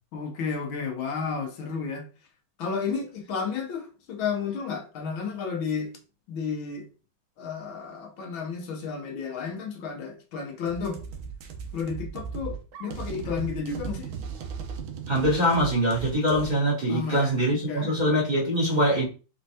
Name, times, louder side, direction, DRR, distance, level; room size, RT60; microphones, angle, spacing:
voice 1, 0.1-2.1 2.6-6.0 6.3-6.9 7.4-11.0 11.7-14.1 16.9-17.9, left 5 dB, 75° left, 1.6 m, -32 dB
sound 1, 10.7-16.5, right 6 dB, 75° right, 1.5 m, -37 dB
voice 2, 15.1-19.0, equal, 25° right, 1.5 m, -23 dB
4.4 x 4.2 x 2.8 m
omnidirectional pair, 2.3 m